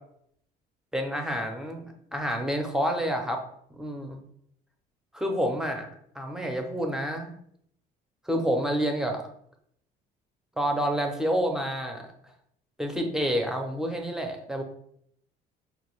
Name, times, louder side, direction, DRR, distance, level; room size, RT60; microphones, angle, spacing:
voice 1, 0.9-3.4 3.7-4.2 5.1-5.9 6.1-7.3 8.3-9.2 10.6-12.1 12.8-14.6, equal, 5° right, 3 dB, 0.6 m, -28 dB
4.9 x 2.3 x 3.1 m, 0.69 s
cardioid pair, 110°, 17 cm